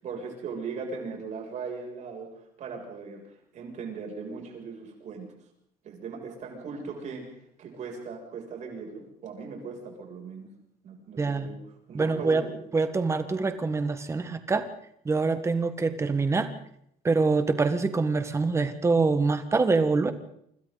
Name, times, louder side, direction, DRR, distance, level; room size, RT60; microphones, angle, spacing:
voice 1, 0.0-5.3 5.8-11.6 11.9-12.6, right 5 dB, 45° right, 1 dB, 7.2 m, -39 dB
voice 2, 11.2-11.5 11.9-12.4 12.7-14.6 15.0-16.5 17.0-20.1, right 4 dB, 15° right, 9 dB, 1.5 m, -25 dB
28.5 x 26.0 x 4.1 m, 0.73 s
cardioid pair, 170°, 16 cm